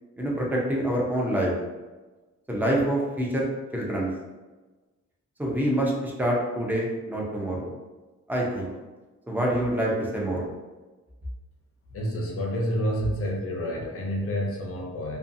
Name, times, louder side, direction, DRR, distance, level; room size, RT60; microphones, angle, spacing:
voice 1, 0.2-1.6 2.5-4.1 5.4-7.7 8.3-8.8 9.3-10.4, right 1 dB, 5° right, -3 dB, 0.4 m, -26 dB
voice 2, 11.9-15.2, equal, 50° left, -1 dB, 0.5 m, -29 dB
2.6 x 2.3 x 2.5 m, 1.2 s
wide cardioid pair, 170°, 30 cm